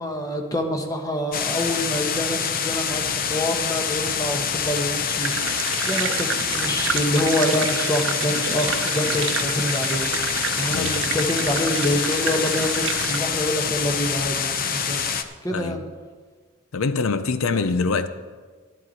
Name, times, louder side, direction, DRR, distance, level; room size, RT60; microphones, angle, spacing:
voice 1, 0.0-3.0 3.3-5.6 5.9-10.3 10.6-15.0 15.4-15.8 17.5-17.7, left 1 dB, 15° left, 1.1 m, -26 dB
sound 1, 1.3-15.2, left 7 dB, 45° left, 0.6 m, -26 dB
sound 2, 5.2-13.2, right 8 dB, 65° right, 0.6 m, -30 dB
voice 2, 10.7-11.0 15.5-15.8 16.7-18.1, left 4 dB, 85° left, 0.6 m, -24 dB
13.0 x 11.0 x 4.2 m
head